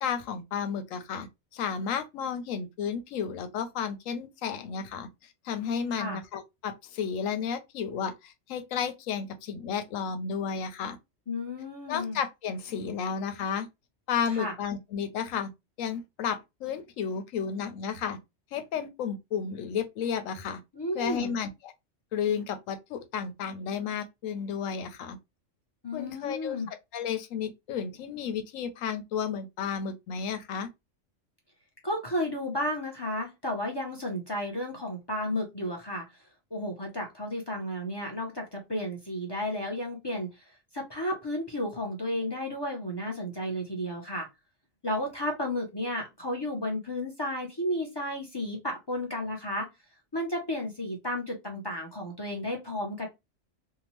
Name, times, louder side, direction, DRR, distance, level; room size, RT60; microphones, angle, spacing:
voice 1, 0.0-1.3 1.5-11.0 11.9-13.7 14.1-15.5 15.8-18.2 18.5-20.6 20.9-21.7 22.1-25.2 25.9-30.7, left 7 dB, 85° left, 1.0 m, -32 dB
voice 2, 11.3-12.2 14.3-14.5 20.7-21.4 25.8-26.7 31.8-36.0 36.5-40.4 40.7-44.3 44.8-49.7 50.1-53.1, left 1 dB, 30° left, 0.5 m, -33 dB
2.8 x 2.2 x 2.9 m
omnidirectional pair, 1.3 m